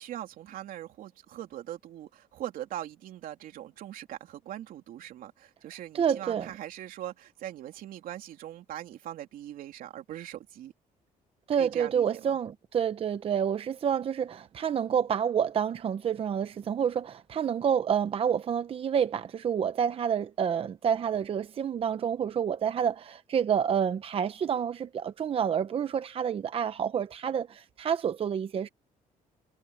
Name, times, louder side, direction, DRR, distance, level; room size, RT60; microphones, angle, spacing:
voice 1, 0.0-10.7 11.6-12.4, right 12 dB, 75° right, 3.1 m, -41 dB
voice 2, 5.9-6.5 11.5-28.7, right 8 dB, 40° right, 0.7 m, -28 dB
cardioid pair, 125°, 15 cm